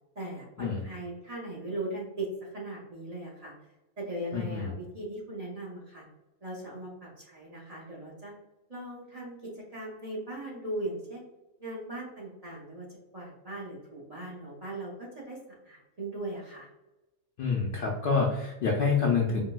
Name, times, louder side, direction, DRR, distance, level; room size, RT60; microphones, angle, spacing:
voice 1, 0.2-3.5 4.0-6.0 6.4-8.3 8.7-11.2 11.6-12.9 13.1-15.4 15.6-16.7, right 1 dB, 40° right, -5 dB, 0.7 m, -39 dB
voice 2, 4.3-4.7 17.4-19.4, left 5 dB, 60° left, -2 dB, 0.6 m, -27 dB
4.5 x 2.0 x 2.2 m, 1.0 s
omnidirectional pair, 1.3 m